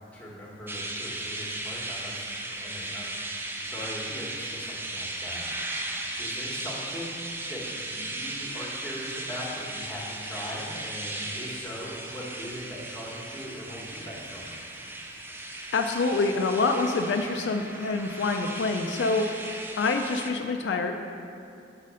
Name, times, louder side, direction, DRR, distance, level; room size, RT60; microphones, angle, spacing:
voice 1, 0.1-5.5 6.2-14.5, equal, 5° left, -5 dB, 1.1 m, -40 dB
sound 1, 0.7-20.3, right 1 dB, 10° right, 0.4 m, -36 dB
voice 2, 15.7-20.9, left 3 dB, 70° left, 4 dB, 0.4 m, -26 dB
6.3 x 4.1 x 6.2 m, 2.5 s
head